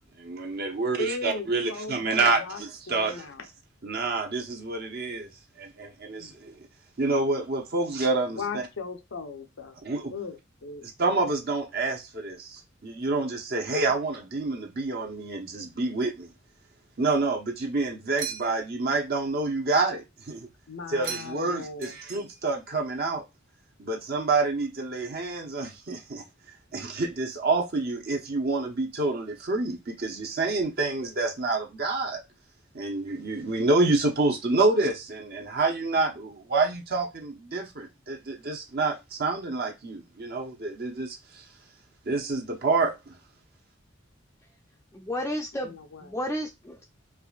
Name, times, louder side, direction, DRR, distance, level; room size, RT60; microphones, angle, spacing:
voice 1, 0.2-3.2 3.8-5.3 5.6-6.6 7.0-8.6 9.8-10.1 11.0-16.3 17.0-20.5 20.9-23.2 23.8-26.2 26.7-32.2 32.7-41.4 42.1-43.1, right 3 dB, 50° right, 0.8 m, -28 dB
voice 2, 1.0-3.5 6.2-6.3 8.3-9.7 10.1-10.9 20.7-22.0 45.6-46.2, left 3 dB, 75° left, 0.7 m, -37 dB
sound 1, 18.2-18.8 21.0-21.5 21.8-22.6, right 7 dB, 90° right, 0.9 m, -38 dB
voice 3, 44.9-46.8, equal, 10° left, 0.5 m, -32 dB
4.7 x 2.5 x 2.3 m
head